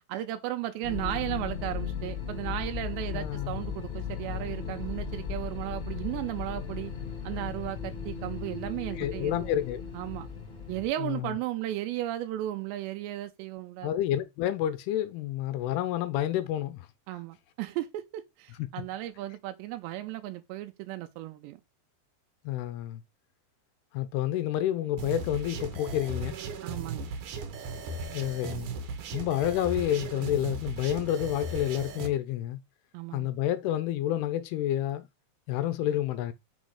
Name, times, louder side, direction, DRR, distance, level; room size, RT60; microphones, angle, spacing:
voice 1, 0.1-6.9 7.2-9.4 9.9-10.3 10.7-13.9 17.1-21.6 26.6-27.1 32.9-33.3, right 14 dB, 85° right, 2.8 m, -35 dB
sound 1, 0.8-10.9, left 6 dB, 45° left, 0.8 m, -36 dB
voice 2, 3.1-3.6 9.0-9.8 11.0-11.4 13.8-16.9 22.5-23.0 23.9-26.4 28.1-28.7 29.1-32.6 33.1-35.1 35.5-36.3, left 12 dB, 80° left, 2.4 m, -29 dB
sound 2, 25.0-32.1, right 3 dB, 70° right, 2.1 m, -37 dB
6.5 x 3.9 x 4.8 m
omnidirectional pair, 4.9 m